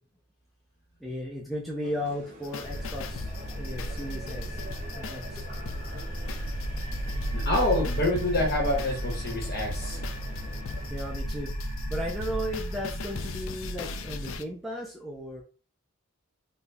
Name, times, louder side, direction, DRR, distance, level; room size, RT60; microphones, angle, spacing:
voice 1, 1.0-3.3 3.6-4.6 4.9-5.4 10.9-11.5 11.9-15.4, equal, ahead, -4 dB, 0.7 m, -35 dB
sound 1, 1.8-10.9, right 1 dB, 40° right, 1.0 m, -47 dB
sound 2, 2.4-14.4, left 6 dB, 65° left, 0.4 m, -42 dB
sound 3, 2.6-14.4, right 1 dB, 80° left, 1.5 m, -34 dB
voice 2, 7.3-10.0, left 1 dB, 45° left, 0 dB, 1.5 m, -27 dB
4.1 x 2.7 x 3.5 m, 0.35 s
head